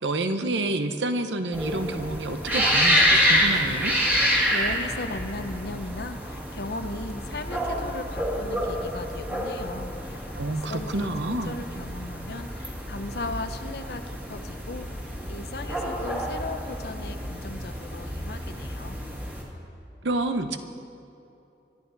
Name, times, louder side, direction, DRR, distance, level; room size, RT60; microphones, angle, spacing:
voice 1, 0.0-4.0 10.3-11.6 20.0-20.6, right 2 dB, 90° right, 8 dB, 0.9 m, -28 dB
sound 1, 1.5-19.4, equal, 10° right, 1.9 m, -28 dB
voice 2, 4.1-14.9 15.3-19.0, left 2 dB, 65° left, 9 dB, 0.8 m, -37 dB
24.5 x 11.0 x 4.0 m, 2.8 s
head